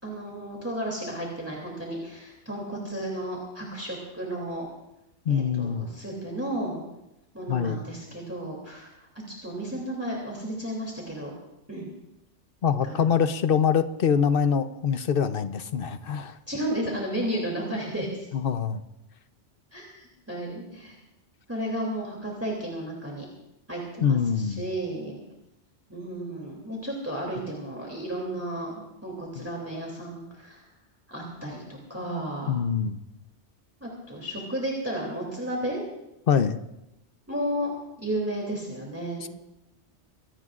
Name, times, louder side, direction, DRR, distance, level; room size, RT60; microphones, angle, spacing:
voice 1, 0.0-4.7 5.3-6.8 7.3-8.9 9.3-11.3 11.7-11.9 12.8-13.0 16.5-18.3 19.7-21.0 21.5-23.2 23.7-25.2 25.9-30.6 31.1-32.5 33.8-35.8 37.3-39.3, right 1 dB, 10° right, -2 dB, 2.8 m, -33 dB
voice 2, 5.3-5.9 7.5-7.8 12.6-16.4 18.3-18.8 24.0-24.7 29.4-29.5 32.5-33.0 36.3-36.6 39.2-39.3, left 7 dB, 55° left, 11 dB, 0.9 m, -24 dB
24.5 x 17.0 x 2.5 m, 0.90 s
omnidirectional pair, 1.2 m